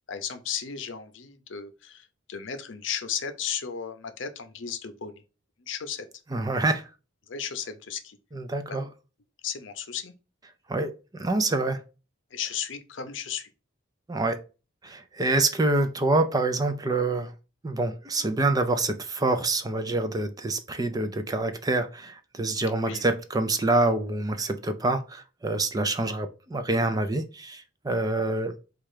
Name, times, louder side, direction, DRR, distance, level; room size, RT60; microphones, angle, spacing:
voice 1, 0.1-5.2 5.6-6.1 7.3-8.2 9.4-10.1 12.3-13.5 22.8-23.0 28.2-28.3, left 8 dB, 70° left, 0.7 m, -35 dB
voice 2, 6.3-6.9 8.3-8.9 10.7-11.8 14.1-14.4 14.8-17.3 17.6-28.5, right 2 dB, 20° right, 0.4 m, -26 dB
4.3 x 2.4 x 4.8 m
head